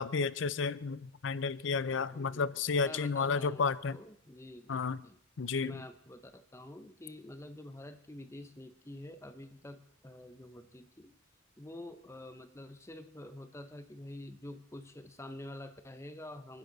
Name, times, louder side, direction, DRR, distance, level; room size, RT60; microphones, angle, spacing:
voice 1, 0.0-4.0 4.7-5.0 5.4-5.8, left 5 dB, 70° left, 17 dB, 0.5 m, -32 dB
voice 2, 1.8-5.2 5.6-11.1 11.6-16.6, left 1 dB, 15° left, 9 dB, 0.7 m, -48 dB
29.5 x 10.0 x 4.0 m, 0.70 s
head